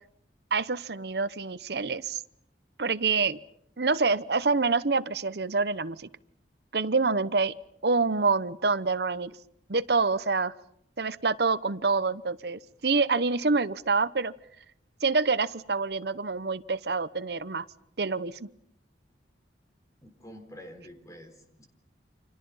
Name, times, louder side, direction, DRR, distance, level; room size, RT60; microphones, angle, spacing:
voice 1, 0.5-2.2 2.8-3.4 3.8-6.1 6.7-7.5 7.8-9.3 9.7-10.5 11.0-14.3 15.0-17.6 18.0-18.5, right 4 dB, 65° right, 16 dB, 0.9 m, -26 dB
voice 2, 20.0-21.7, equal, 20° left, 6 dB, 3.9 m, -48 dB
29.0 x 27.0 x 5.6 m, 0.72 s
head